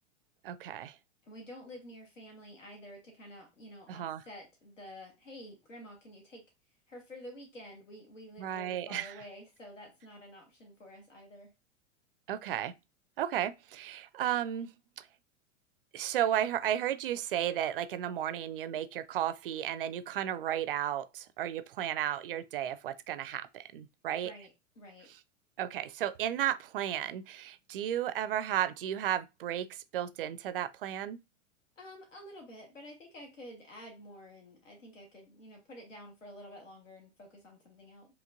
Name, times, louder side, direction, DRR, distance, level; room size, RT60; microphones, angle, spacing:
voice 1, 0.4-1.0 3.9-4.2 8.4-9.1 12.3-12.7 13.2-14.7 15.0-15.1 15.9-24.3 25.6-31.2, right 11 dB, 50° right, 0.4 m, -33 dB
voice 2, 1.2-6.4 6.9-11.5 24.2-24.5 24.7-25.1 31.8-38.1, equal, 75° left, 1.4 m, -50 dB
5.0 x 3.0 x 2.5 m
figure-of-eight pair, 95°, 38 cm